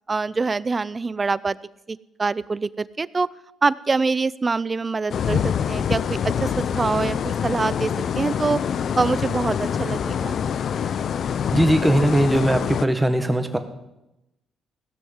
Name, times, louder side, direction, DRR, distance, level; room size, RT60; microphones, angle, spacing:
voice 1, 0.1-1.6 1.9-3.3 3.6-7.9 8.2-8.6 9.0-10.4, right 4 dB, 30° right, 19 dB, 0.5 m, -24 dB
sound 1, 5.1-12.8, left 8 dB, 60° left, 0.5 m, -25 dB
voice 2, 11.5-13.6, right 1 dB, 10° right, 7 dB, 1.6 m, -19 dB
17.0 x 6.4 x 8.0 m, 0.91 s
cardioid pair, 90°, 0 cm